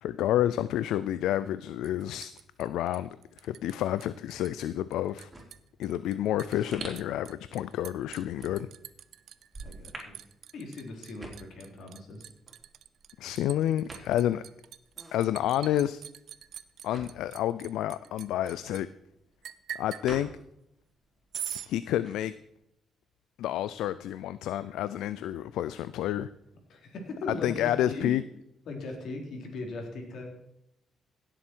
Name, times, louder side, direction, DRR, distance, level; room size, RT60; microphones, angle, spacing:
voice 1, 0.0-2.3 2.6-3.1 3.4-5.3 5.8-8.7 13.2-14.4 15.1-16.0 16.8-18.9 19.7-20.3 21.7-22.3 23.4-26.3 27.4-28.2, left 12 dB, 85° left, 15 dB, 0.4 m, -29 dB
Liquid, 1.8-4.7 4.9-18.8 19.4-20.1 21.3-21.7, right 10 dB, 70° right, 0.6 m, -44 dB
sound 1, 5.1-20.8 21.1-22.7, right 2 dB, 20° right, 4.0 m, -48 dB
voice 2, 9.6-10.2 10.5-12.3 26.7-28.1 28.7-30.3, left 2 dB, 70° left, 2 dB, 3.6 m, -39 dB
16.5 x 7.7 x 4.6 m, 0.78 s
cardioid pair, 90°, 0 cm